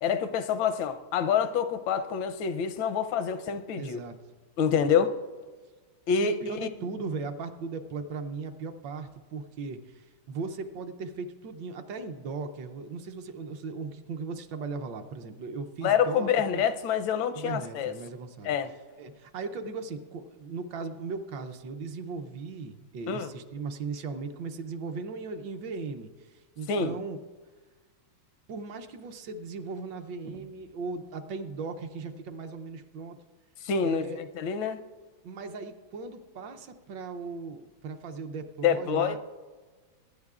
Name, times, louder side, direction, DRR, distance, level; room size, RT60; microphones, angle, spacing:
voice 1, 0.0-4.0 4.6-5.2 6.1-6.4 15.8-17.9 18.4-18.7 23.1-23.3 26.7-26.9 33.6-34.0 34.4-34.8 38.6-39.2, left 7 dB, 80° left, 1.4 m, -26 dB
voice 2, 3.8-4.2 4.7-4.9 6.2-16.6 17.3-18.6 19.0-27.2 28.5-33.2 33.8-34.2 35.2-39.2, right 4 dB, 70° right, 1.3 m, -38 dB
23.0 x 10.0 x 2.4 m
omnidirectional pair, 2.2 m